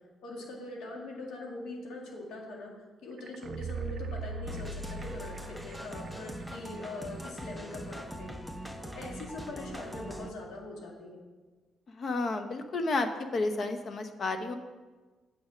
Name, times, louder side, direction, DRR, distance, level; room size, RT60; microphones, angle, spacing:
voice 1, 0.2-2.7 3.0-8.4 8.9-11.2, left 2 dB, 80° left, -1 dB, 2.1 m, -42 dB
sound 1, 3.2-6.1 6.4-6.5, right 3 dB, 55° right, 0.5 m, -39 dB
sound 2, 4.5-10.3, right 1 dB, ahead, 0.8 m, -42 dB
voice 2, 11.9-14.6, left 3 dB, 50° left, 7 dB, 0.9 m, -31 dB
7.7 x 6.5 x 6.2 m, 1.3 s
cardioid pair, 90°, 0 cm